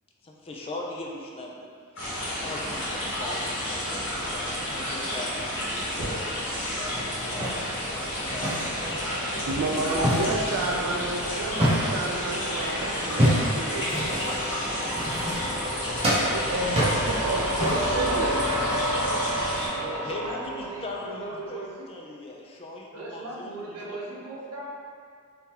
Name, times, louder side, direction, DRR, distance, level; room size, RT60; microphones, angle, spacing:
voice 1, 0.2-1.7 2.4-8.8 9.4-11.0 15.9-16.0 16.6-17.7 19.9-24.0, left 2 dB, 25° left, -1 dB, 0.3 m, -40 dB
sound 1, 2.0-19.7, equal, 60° left, 1.3 m, -31 dB
sound 2, 6.4-21.4, equal, 5° right, 1.1 m, -33 dB
sound 3, 6.9-9.0 9.4-12.2 13.0-15.8 16.0-18.0, equal, 25° right, 0.8 m, -27 dB
voice 2, 9.5-14.5 16.3-18.9, right 2 dB, 75° right, 0 dB, 0.3 m, -31 dB
voice 3, 19.7-21.9 22.9-24.7, right 2 dB, 90° right, -4 dB, 0.7 m, -37 dB
3.6 x 2.8 x 2.8 m, 2.1 s
head